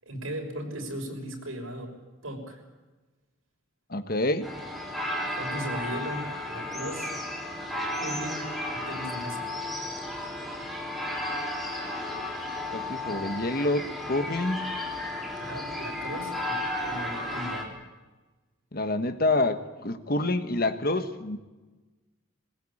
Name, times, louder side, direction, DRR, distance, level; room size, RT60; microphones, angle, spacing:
voice 1, 0.0-1.9 2.2-2.6 5.2-7.1 7.9-9.5 15.4-17.7, equal, 80° right, 2 dB, 6.3 m, -37 dB
voice 2, 3.9-4.5 12.7-14.7 18.7-21.4, left 2 dB, 45° left, 9 dB, 1.5 m, -27 dB
sound 1, 4.4-17.6, left 1 dB, ahead, 3.7 m, -33 dB
21.5 x 20.5 x 8.7 m, 1.2 s
head